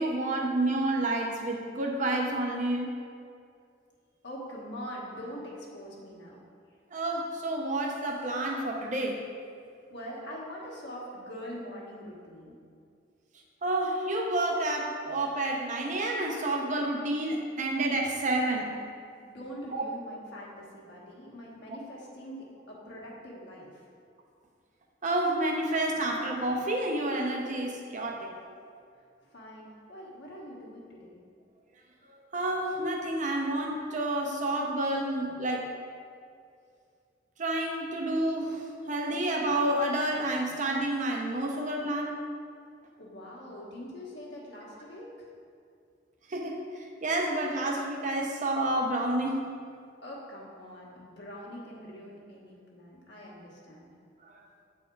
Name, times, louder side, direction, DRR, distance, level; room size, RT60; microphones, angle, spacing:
voice 1, 0.0-2.9 6.9-9.2 13.6-18.7 19.7-19.8 25.0-28.3 32.3-35.7 37.4-42.2 46.3-49.4 54.3-54.4, right 1 dB, 45° right, 1 dB, 0.7 m, -29 dB
voice 2, 4.2-6.4 9.9-12.6 19.2-23.8 29.2-31.2 43.0-45.3 50.0-53.9, equal, 70° left, -4 dB, 1.4 m, -43 dB
7.9 x 4.2 x 4.6 m, 2.3 s
head